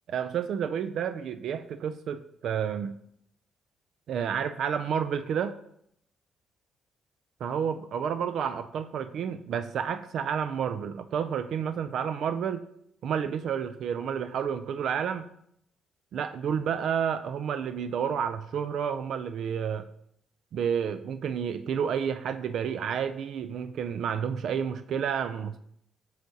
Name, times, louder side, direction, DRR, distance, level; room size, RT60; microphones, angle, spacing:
voice 1, 0.1-2.9 4.1-5.6 7.4-12.7 13.0-15.3 16.1-19.9 20.5-25.6, right 7 dB, 70° right, 11 dB, 0.3 m, -30 dB
8.1 x 6.5 x 2.7 m, 0.72 s
cardioid pair, 90°, 0 cm